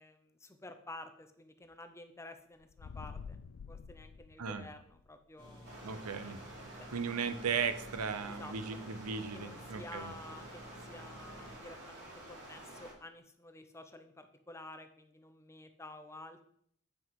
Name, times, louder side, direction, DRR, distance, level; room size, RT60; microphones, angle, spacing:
voice 1, 0.0-3.4 3.7-6.0 6.8-6.9 8.3-8.8 9.1-16.4, left 2 dB, 10° left, 8 dB, 0.6 m, -51 dB
sound 1, 2.6-5.1, left 5 dB, 65° left, 0.4 m, -48 dB
sound 2, 5.4-11.6, right 1 dB, 20° right, 1.8 m, -53 dB
Stream, 5.6-12.9, right 1 dB, 50° right, 2.5 m, -50 dB
voice 2, 5.8-6.4 6.9-10.1, right 6 dB, 85° right, 11 dB, 0.7 m, -36 dB
7.8 x 5.8 x 4.7 m, 0.66 s
head